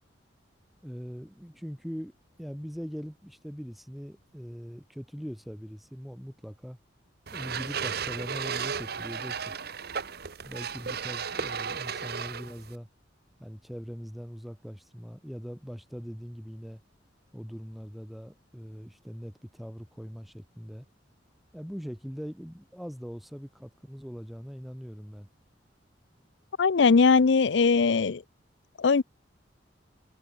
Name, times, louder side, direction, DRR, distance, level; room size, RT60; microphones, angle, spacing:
voice 1, 0.8-2.1 2.4-6.8 7.3-9.6 10.4-12.9 13.4-16.8 17.3-20.9 21.5-25.3, equal, ahead, 2.5 m, -41 dB
sound 1, 7.3-12.8, right 6 dB, 55° right, 1.3 m, -34 dB
voice 2, 26.6-28.2 28.8-29.0, left 4 dB, 70° left, 0.6 m, -20 dB
head